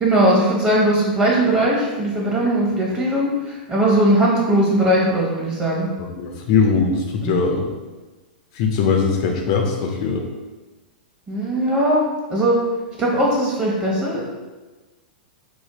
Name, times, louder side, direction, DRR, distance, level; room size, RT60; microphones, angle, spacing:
voice 1, 0.0-5.9 7.2-7.3 11.3-12.0 12.3-12.6 13.0-14.2, right 1 dB, 20° right, -4 dB, 1.0 m, -19 dB
voice 2, 6.2-7.7 8.5-10.3, left 5 dB, 45° left, 2 dB, 0.4 m, -20 dB
4.1 x 2.1 x 3.0 m, 1.2 s
figure-of-eight pair, 105°, 5 cm